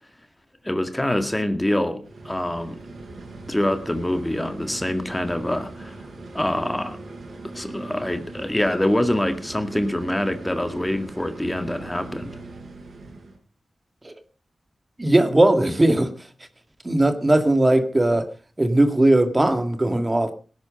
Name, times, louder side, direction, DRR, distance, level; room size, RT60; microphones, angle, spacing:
voice 1, 0.6-2.8 3.5-5.9 6.3-7.0 7.4-12.4, left 1 dB, 10° left, 9 dB, 1.9 m, -25 dB
sound 1, 2.0-13.4, right 2 dB, 70° right, 5.5 m, -40 dB
voice 2, 15.0-16.1 16.8-18.2 18.6-20.3, right 1 dB, 25° right, 8 dB, 2.0 m, -18 dB
18.5 x 10.5 x 5.2 m, 0.38 s
cardioid pair, 65°, 0 cm